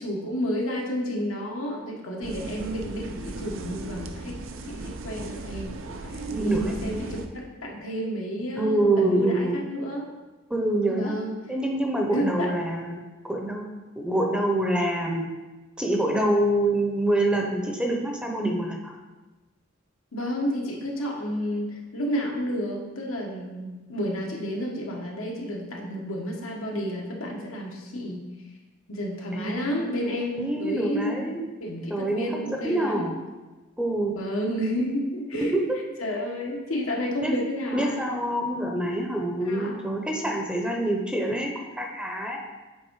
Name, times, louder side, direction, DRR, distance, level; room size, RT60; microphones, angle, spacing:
voice 1, 0.0-4.4 4.7-5.8 6.0-6.1 6.4-10.1 10.9-11.3 12.1-12.5 20.1-28.2 28.9-33.1 34.1-35.5 36.0-38.0 39.4-39.8, equal, 90° left, -1 dB, 1.4 m, -31 dB
sound 1, 2.2-7.3, right 2 dB, 70° right, 0.6 m, -36 dB
voice 2, 6.3-6.7 8.6-9.6 10.5-11.1 11.5-13.0 13.3-13.6 14.0-15.2 15.8-19.0 29.3-30.1 30.4-31.4 31.9-32.3 32.6-33.2 33.8-34.1 35.4-35.6 37.2-37.3 37.7-41.5 41.8-42.4, right 1 dB, 5° right, 1 dB, 0.7 m, -26 dB
8.0 x 3.6 x 4.7 m, 1.2 s
head